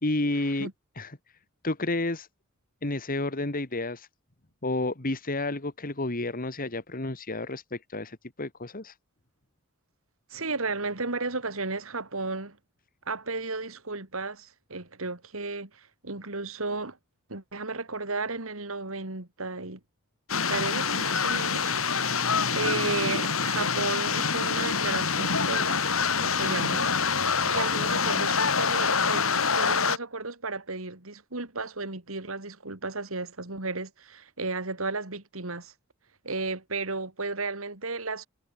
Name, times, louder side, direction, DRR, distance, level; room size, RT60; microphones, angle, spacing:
voice 1, 0.0-0.7 1.0-1.2 1.6-2.3 2.8-4.1 4.6-8.9, left 2 dB, 45° left, 2.1 m, -30 dB
voice 2, 10.3-12.6 13.1-17.0 17.3-19.8 20.5-25.8 26.2-35.7 36.2-38.3, right 3 dB, 75° right, 3.2 m, -34 dB
sound 1, 20.3-30.0, left 5 dB, 75° left, 4.9 m, -26 dB
head